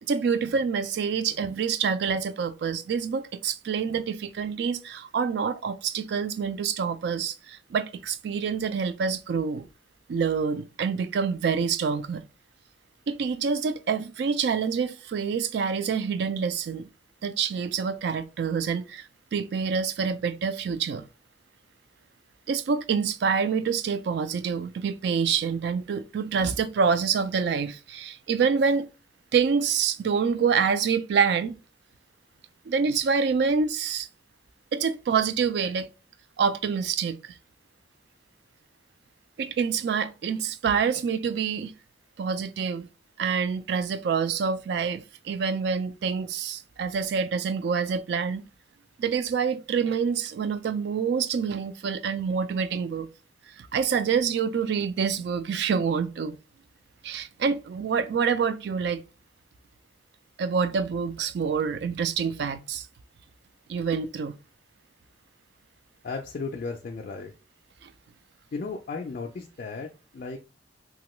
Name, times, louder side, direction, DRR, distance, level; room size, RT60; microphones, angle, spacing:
voice 1, 0.0-9.7 10.1-12.2 13.1-16.9 17.2-21.1 22.5-28.9 29.3-31.6 32.7-34.1 34.7-35.9 36.4-37.3 39.4-41.7 42.2-42.9 43.2-48.4 49.0-53.1 53.6-56.4 57.0-59.0 60.4-62.9 63.7-64.3 67.8-67.9, right 6 dB, 60° right, 0.3 m, -27 dB
voice 2, 66.0-67.3 68.5-70.4, left 4 dB, 45° left, 0.3 m, -35 dB
2.9 x 2.2 x 3.0 m
head